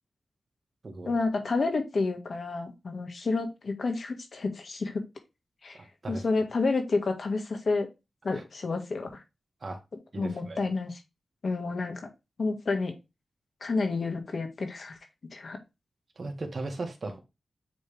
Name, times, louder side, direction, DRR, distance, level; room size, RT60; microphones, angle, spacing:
voice 1, 1.1-5.1 5.6-5.8 6.1-7.9 8.2-9.2 10.2-11.0 11.4-12.1 12.4-12.9 13.6-15.0 15.3-15.6, left 3 dB, 60° left, 4 dB, 1.7 m, -30 dB
voice 2, 5.7-6.3 8.3-8.4 9.6-9.8 10.1-10.6 16.2-17.2, right 2 dB, 55° right, 3 dB, 1.8 m, -37 dB
9.2 x 3.4 x 3.4 m, 0.25 s
wide cardioid pair, 80°, 0 cm